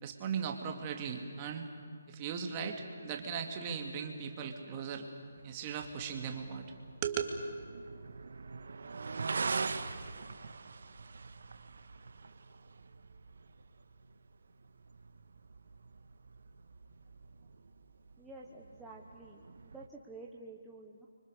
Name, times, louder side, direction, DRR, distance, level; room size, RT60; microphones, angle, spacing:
voice 1, 0.0-1.7 2.1-5.1 5.4-6.7 7.0-7.2, right 7 dB, 20° right, 3 dB, 2.4 m, -38 dB
sound 1, 5.2-19.9, right 4 dB, 65° right, 1.6 m, -44 dB
voice 2, 18.2-21.1, right 2 dB, 5° right, -4 dB, 1.2 m, -50 dB
30.0 x 24.5 x 6.6 m, 2.2 s
hypercardioid pair, 170°, 0 cm